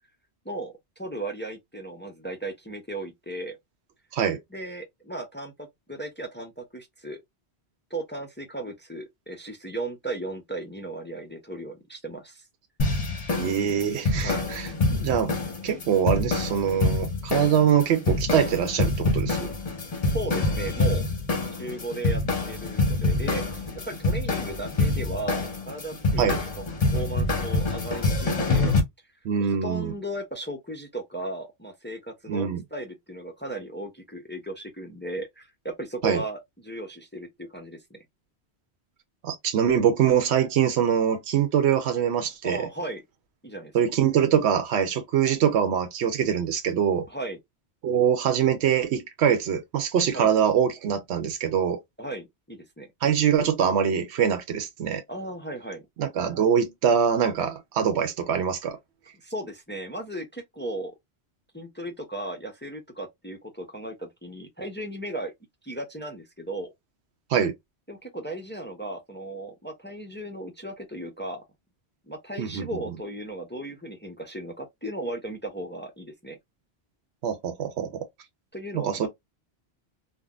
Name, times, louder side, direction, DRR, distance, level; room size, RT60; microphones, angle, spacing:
voice 1, 0.5-3.6 4.5-7.2 7.9-12.5 14.2-14.5 19.9-21.1 21.6-22.2 22.5-28.7 29.4-38.0 42.4-43.0 43.4-43.7 47.1-47.4 50.1-50.3 52.0-52.9 55.1-55.8 59.2-60.9 61.5-65.3 65.6-66.7 67.9-71.4 72.1-76.4 78.5-79.1, right 1 dB, 20° left, 0.3 m, -36 dB
sound 1, 12.8-28.8, left 2 dB, 40° left, 0.7 m, -26 dB
voice 2, 13.4-15.4 15.6-19.5 26.2-26.4 29.2-29.9 32.3-32.6 36.0-36.2 39.2-42.6 43.7-47.1 47.8-51.8 53.0-55.0 56.0-58.8 67.3-67.5 72.4-72.7 77.2-78.1 78.7-79.1, right 8 dB, 90° right, 0.9 m, -24 dB
3.5 x 2.1 x 2.3 m
omnidirectional pair, 1.1 m